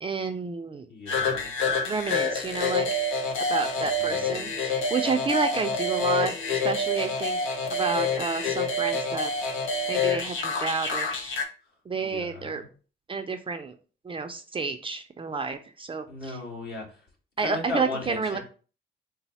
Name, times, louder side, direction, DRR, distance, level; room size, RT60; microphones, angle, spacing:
voice 1, 0.0-0.9 1.9-3.1 3.5-6.3 6.6-7.4 7.7-9.3 9.9-11.3 11.9-12.6 13.1-13.7 14.0-16.3 17.4-18.4, right 4 dB, 25° right, 6 dB, 0.4 m, -30 dB
voice 2, 0.9-1.5 3.7-4.5 12.0-12.7 16.1-17.1 17.4-18.4, left 3 dB, 55° left, -1 dB, 1.7 m, -37 dB
Jaw Harp, 1.1-11.4, left 3 dB, 80° left, 0.7 m, -27 dB
4.1 x 2.0 x 4.0 m, 0.38 s
cardioid pair, 90°, 20 cm